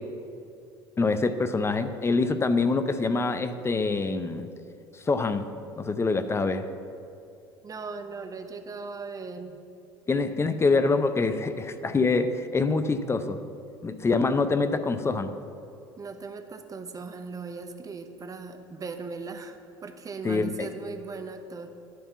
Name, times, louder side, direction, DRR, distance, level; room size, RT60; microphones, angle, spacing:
voice 1, 1.0-4.5 4.9-5.5 5.8-6.7 10.1-13.4 13.8-15.3 20.2-20.7, left 3 dB, 20° left, 10 dB, 0.5 m, -25 dB
voice 2, 7.6-9.6 16.0-21.7, right 4 dB, 30° right, 7 dB, 0.8 m, -38 dB
10.5 x 3.6 x 6.9 m, 2.5 s
hypercardioid pair, 70°, 13 cm